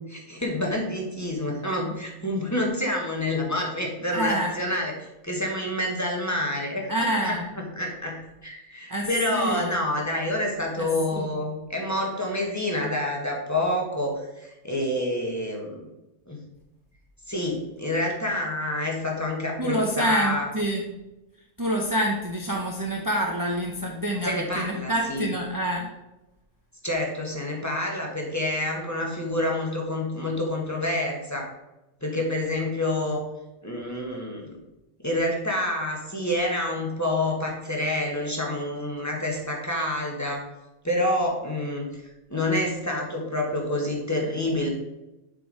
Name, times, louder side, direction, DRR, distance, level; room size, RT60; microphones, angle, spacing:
voice 1, 0.1-4.9 5.2-6.9 7.2-15.9 16.3-16.4 17.3-20.5 24.2-25.3 26.8-31.5 32.0-33.2 33.6-34.6 35.0-40.4 40.8-42.0 42.3-44.7, left 1 dB, 10° left, -1 dB, 1.3 m, -28 dB
voice 2, 4.1-4.5 6.9-7.5 8.9-9.7 10.8-10.9 11.2-11.3 19.6-20.8 21.6-25.9, right 1 dB, 20° right, -1 dB, 0.6 m, -27 dB
7.4 x 4.6 x 4.8 m, 0.95 s
omnidirectional pair, 1.5 m